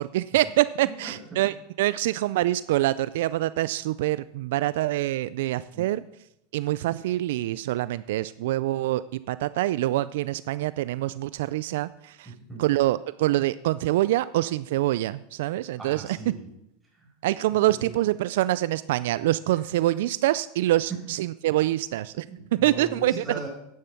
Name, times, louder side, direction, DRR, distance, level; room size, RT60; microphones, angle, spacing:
voice 1, 0.0-6.0 6.5-12.3 12.6-16.2 17.2-22.3 22.6-23.2, right 15 dB, 75° right, 16 dB, 0.3 m, -25 dB
voice 2, 0.8-1.4 5.7-5.9 12.2-12.6 15.8-16.5 16.9-17.1 17.5-18.0 19.5-19.6 20.9-21.0 22.3-23.5, right 3 dB, 10° right, -2 dB, 5.1 m, -39 dB
10.0 x 9.9 x 5.8 m, 0.80 s
supercardioid pair, 115°, 0 cm